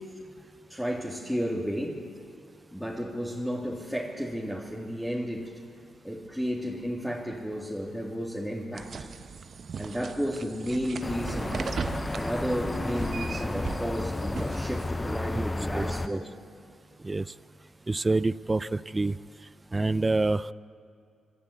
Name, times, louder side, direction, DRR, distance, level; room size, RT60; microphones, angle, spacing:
voice 1, 0.7-2.0 2.7-5.5 6.0-9.1 9.8-11.6 12.1-16.3, equal, ahead, -4 dB, 3.0 m, -32 dB
sound 1, 8.8-14.9, right 5 dB, 55° right, 0.8 m, -38 dB
sound 2, 11.0-16.1, left 2 dB, 20° left, 0.6 m, -32 dB
voice 2, 15.8-16.2 17.0-17.3 17.9-19.2 19.7-20.5, right 2 dB, 25° right, 17 dB, 0.5 m, -27 dB
26.5 x 12.0 x 8.3 m, 2.4 s
hypercardioid pair, 45°, 0 cm